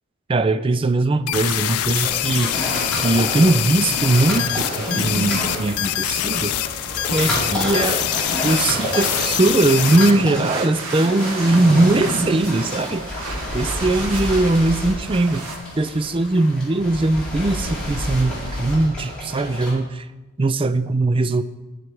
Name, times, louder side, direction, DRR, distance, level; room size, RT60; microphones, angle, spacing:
voice 1, 0.3-2.5 2.9-6.5 7.1-8.2 8.4-13.3 13.5-20.1 20.4-21.4, right 2 dB, 25° right, 13 dB, 0.3 m, -20 dB
sound 1, 1.3-10.1, left 13 dB, 85° left, 0.5 m, -24 dB
sound 2, 2.0-19.7, equal, 5° left, 4.3 m, -29 dB
sound 3, 6.8-15.6, right 3 dB, 80° right, 1.5 m, -34 dB
10.5 x 9.7 x 4.7 m, 1.1 s
head